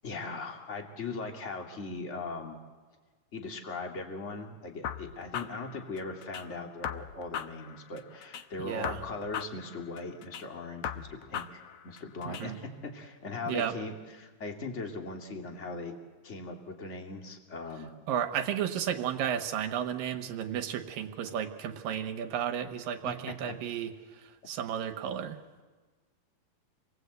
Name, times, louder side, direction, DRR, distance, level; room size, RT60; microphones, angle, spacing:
voice 1, 0.0-2.6 3.3-15.9 16.2-17.9 23.0-23.1, left 3 dB, 25° left, 2 dB, 2.2 m, -39 dB
sound 1, 4.8-6.4 6.8-8.4 8.8-10.4 10.8-12.4, left 9 dB, 70° left, 1.4 m, -39 dB
voice 2, 8.6-9.0 12.3-12.6 13.5-13.7 18.1-25.6, right 9 dB, 90° right, 6 dB, 3.0 m, -33 dB
27.5 x 21.0 x 8.1 m, 1.4 s
omnidirectional pair, 3.9 m